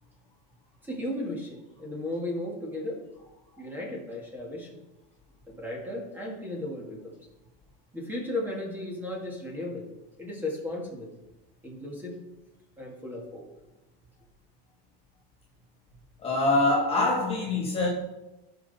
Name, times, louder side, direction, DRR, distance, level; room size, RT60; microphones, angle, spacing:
voice 1, 0.8-3.0 3.6-4.8 5.5-7.2 7.9-9.9 10.2-11.1 11.6-12.2 12.8-13.5, left 1 dB, 5° right, -2 dB, 1.8 m, -35 dB
voice 2, 16.2-17.9, left 2 dB, 20° left, -3 dB, 1.5 m, -24 dB
16.0 x 5.9 x 4.1 m, 1.0 s
cardioid pair, 175°, 31 cm